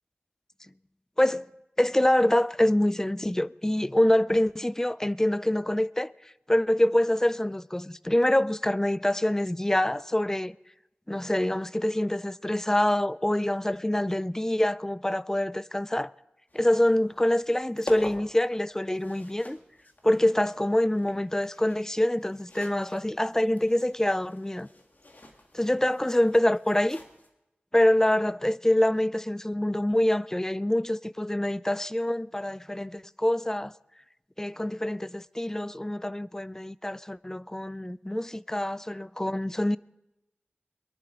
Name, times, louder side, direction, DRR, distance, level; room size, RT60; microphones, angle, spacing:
voice 1, 1.2-1.5 1.8-6.1 6.5-10.6 11.1-16.1 16.5-19.6 20.0-24.7 25.5-27.0 27.7-33.7 34.4-39.8, left 1 dB, 10° left, 0.4 m, -25 dB
sound 1, 16.5-27.3, left 2 dB, 50° left, 1.8 m, -47 dB
22.5 x 11.5 x 3.7 m
wide cardioid pair, 55°, 4 cm